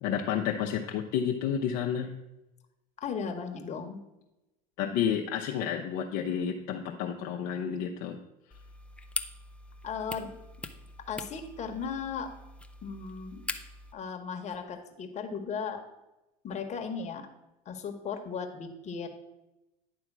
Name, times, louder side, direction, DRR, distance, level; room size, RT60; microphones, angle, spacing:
voice 1, 0.0-2.1 4.8-8.2, left 8 dB, 65° left, 1 dB, 0.7 m, -30 dB
voice 2, 3.0-4.0 9.8-10.3 11.1-12.3 12.8-13.4 13.9-15.8 16.4-17.3 17.6-19.1, left 6 dB, 35° left, 5 dB, 1.2 m, -36 dB
sound 1, 8.5-13.9, left 2 dB, 5° left, 0.5 m, -42 dB
10.0 x 3.5 x 6.0 m, 0.97 s
supercardioid pair, 110°, 19 cm